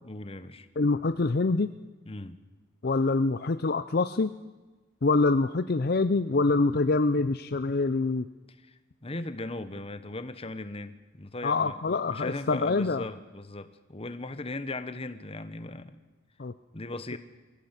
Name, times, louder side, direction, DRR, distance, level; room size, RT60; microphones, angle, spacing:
voice 1, 0.0-0.7 2.1-2.4 8.6-16.0 16.7-17.2, left 2 dB, 30° left, 12 dB, 1.1 m, -38 dB
voice 2, 0.8-1.7 2.8-4.3 5.0-8.3 11.4-13.1 16.4-16.5 17.1-17.2, left 3 dB, 50° left, 11 dB, 0.6 m, -25 dB
22.5 x 16.0 x 8.2 m, 1.2 s
head